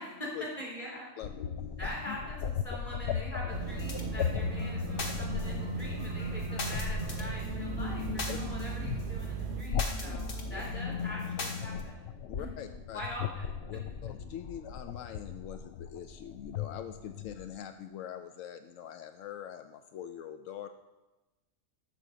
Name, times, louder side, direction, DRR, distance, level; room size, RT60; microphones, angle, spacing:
voice 1, 0.0-1.2 1.8-10.2 10.5-12.1 12.4-12.5 12.9-13.5 17.2-17.3, equal, 25° left, -5 dB, 3.4 m, -43 dB
voice 2, 1.2-1.5 2.1-2.2 8.3-8.4 10.0-10.1 10.5-10.6 12.3-13.0 13.7-20.7, left 9 dB, 85° left, 7 dB, 1.0 m, -43 dB
sound 1, 1.2-17.6, left 7 dB, 65° left, 0.7 m, -38 dB
sound 2, 3.5-9.6, right 10 dB, 65° right, 0.8 m, -39 dB
sound 3, 3.7-11.8, left 2 dB, 45° left, 1.3 m, -38 dB
12.0 x 4.4 x 6.8 m, 1.1 s
omnidirectional pair, 1.3 m